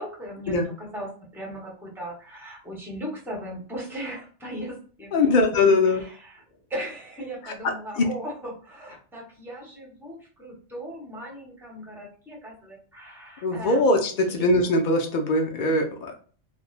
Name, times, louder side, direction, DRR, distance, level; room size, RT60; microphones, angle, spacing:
voice 1, 0.0-6.4 6.7-13.8 14.2-14.5, equal, ahead, -3 dB, 0.9 m, -38 dB
voice 2, 5.1-6.0 7.4-8.1 13.4-16.1, left 2 dB, 70° left, 3 dB, 0.4 m, -22 dB
3.2 x 2.1 x 2.4 m, 0.41 s
omnidirectional pair, 1.4 m